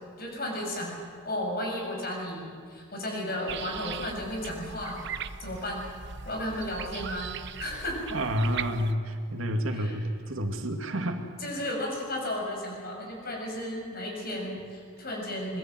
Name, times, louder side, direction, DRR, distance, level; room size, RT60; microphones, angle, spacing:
voice 1, 0.2-1.0 1.2-5.0 5.4-5.9 6.2-7.3 7.6-8.0 9.7-10.0 10.8-11.0 11.4-15.6, left 1 dB, 45° left, 1 dB, 6.7 m, -34 dB
sound 1, 3.5-8.9, right 7 dB, 55° right, 0.9 m, -39 dB
voice 2, 8.1-11.2, equal, 75° right, 4 dB, 2.4 m, -29 dB
26.0 x 21.5 x 7.7 m, 2.2 s
head